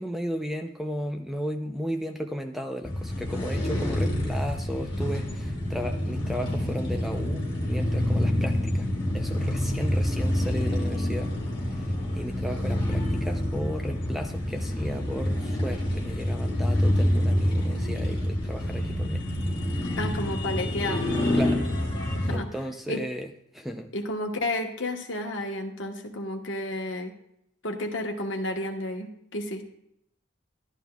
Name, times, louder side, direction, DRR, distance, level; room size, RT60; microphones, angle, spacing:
voice 1, 0.0-8.9 9.1-11.4 11.8-11.9 12.2-19.2 21.3-21.6 22.3-23.9, equal, ahead, 5 dB, 0.4 m, -35 dB
sound 1, 2.8-22.4, left 1 dB, 25° left, 1.9 m, -27 dB
voice 2, 20.0-21.1 22.1-22.5 22.9-23.1 23.9-27.1 27.6-29.6, left 1 dB, 70° left, 2 dB, 1.1 m, -31 dB
12.0 x 11.0 x 2.3 m, 0.76 s
head